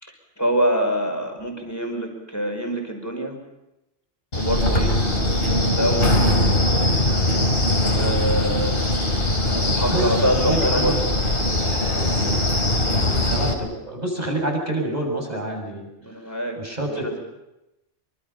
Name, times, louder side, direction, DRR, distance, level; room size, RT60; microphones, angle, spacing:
voice 1, 0.0-3.4 4.3-5.0 5.7-6.4 7.9-8.8 9.5-11.1 12.9-13.1 16.0-16.6 17.0-17.2, right 1 dB, 15° left, 3 dB, 5.5 m, -25 dB
Wind, 4.3-13.5, left 1 dB, 45° left, 4.2 m, -21 dB
voice 2, 9.9-11.1 13.3-15.9 16.6-17.2, right 1 dB, 35° right, 2 dB, 6.9 m, -27 dB
25.5 x 25.5 x 5.7 m, 0.93 s
omnidirectional pair, 1.3 m